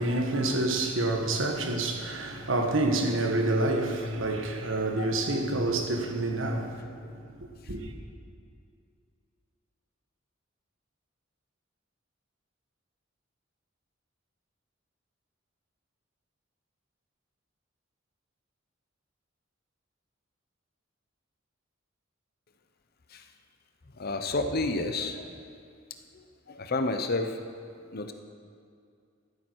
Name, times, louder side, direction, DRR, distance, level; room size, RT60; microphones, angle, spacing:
voice 1, 0.0-6.8 7.4-7.9, right 2 dB, 75° right, 1.5 m, -28 dB
voice 2, 5.0-5.4 6.8-7.1 23.1-23.3 23.9-25.5 26.1-27.4 27.8-28.1, left 2 dB, 50° left, 0.8 m, -32 dB
13.5 x 12.0 x 4.7 m
head